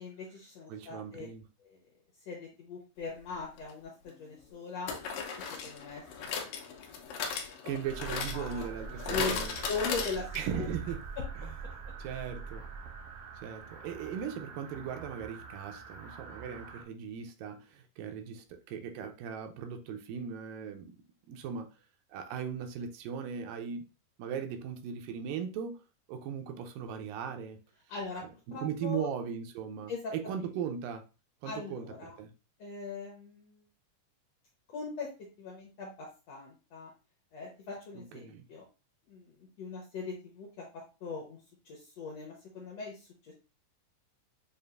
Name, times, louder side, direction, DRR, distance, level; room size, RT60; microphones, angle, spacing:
voice 1, 0.0-1.3 1.6-1.8 2.3-4.9 5.4-6.5 8.3-8.7 9.1-9.4 9.7-10.3 10.6-10.7 27.9-28.2 28.5-29.1 29.9-30.4 31.4-32.2 32.6-33.6 34.7-35.1 35.4-36.9 37.3-38.7 39.1-41.4 41.6-43.3, left 4 dB, 70° left, 1.6 m, -40 dB
voice 2, 0.7-1.5 7.7-9.6 10.3-11.0 11.4-11.6 12.0-12.7 13.4-21.0 21.3-21.7 22.1-23.8 24.2-25.8 26.1-27.6 28.5-31.0 31.4-32.3 37.9-38.5, right 7 dB, 85° right, 2.2 m, -38 dB
sound 1, 3.6-3.7 4.9-10.6 10.9-11.0 11.2-11.3, left 6 dB, 85° left, 2.4 m, -37 dB
sound 2, 7.8-16.8, right 5 dB, 70° right, 1.3 m, -44 dB
6.8 x 2.5 x 2.4 m
omnidirectional pair, 3.9 m